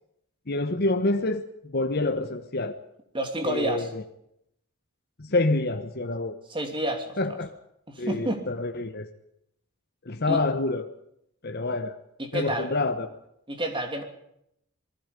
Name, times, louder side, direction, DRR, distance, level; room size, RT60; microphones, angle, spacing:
voice 1, 0.5-2.8 3.4-4.0 5.2-6.4 7.2-7.5 8.0-9.1 10.1-10.9 11.4-11.9 12.3-13.1, left 2 dB, 45° left, 6 dB, 1.2 m, -27 dB
voice 2, 3.1-3.9 6.5-7.2 7.9-8.4 10.3-10.4 12.2-12.7 13.5-14.0, right 1 dB, 25° right, 5 dB, 3.1 m, -29 dB
27.5 x 20.0 x 5.3 m, 0.76 s
head